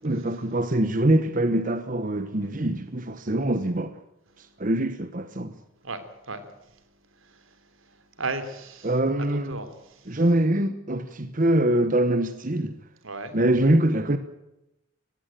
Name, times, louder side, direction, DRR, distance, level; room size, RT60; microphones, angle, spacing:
voice 1, 0.0-3.9 4.4-5.5 8.8-9.6 10.1-12.8 13.3-14.2, right 1 dB, 40° right, 1.1 m, -24 dB
voice 2, 5.8-6.4 6.7-6.8 7.2-8.9 9.2-10.2 13.0-13.4, right 3 dB, 85° right, 3.3 m, -36 dB
20.0 x 15.5 x 9.1 m
head